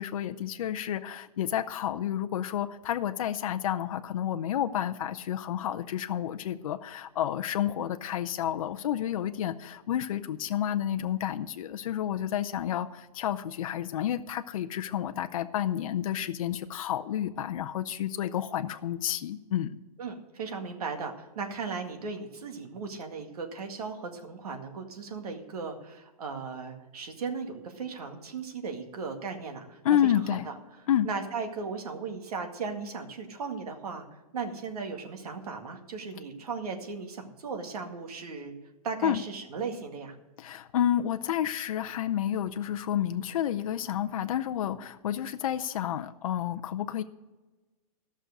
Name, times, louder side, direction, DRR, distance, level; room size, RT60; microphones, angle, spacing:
voice 1, 0.0-19.8 29.8-30.5 30.9-31.1 39.0-39.2 40.4-47.0, left 10 dB, 65° left, 8 dB, 0.6 m, -30 dB
voice 2, 20.0-30.5 31.0-34.1 34.3-38.5 38.8-40.1, right 5 dB, 75° right, 4 dB, 2.0 m, -37 dB
13.5 x 6.3 x 6.5 m, 1.2 s
hypercardioid pair, 160°, 19 cm